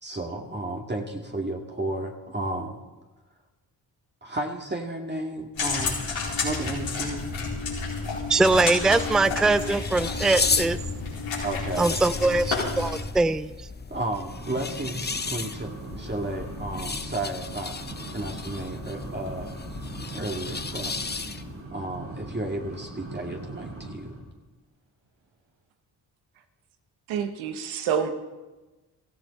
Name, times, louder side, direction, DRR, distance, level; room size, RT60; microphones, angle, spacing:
voice 1, 0.0-2.8 4.2-7.4 11.3-11.9 13.9-17.8 18.1-19.5 20.1-20.9 21.7-24.2, right 1 dB, 20° right, 0 dB, 2.1 m, -33 dB
sound 1, 5.6-13.0, left 4 dB, 85° left, 4.6 m, -30 dB
voice 2, 8.3-10.8 11.8-13.5, right 3 dB, ahead, 15 dB, 0.5 m, -22 dB
sound 2, 9.0-21.6, left 4 dB, 20° left, 0.9 m, -34 dB
sound 3, 14.3-24.4, right 2 dB, 65° right, 4.9 m, -40 dB
voice 3, 27.1-28.1, right 7 dB, 90° right, 8 dB, 1.2 m, -27 dB
17.0 x 14.5 x 4.2 m, 1.2 s
supercardioid pair, 50°, 46 cm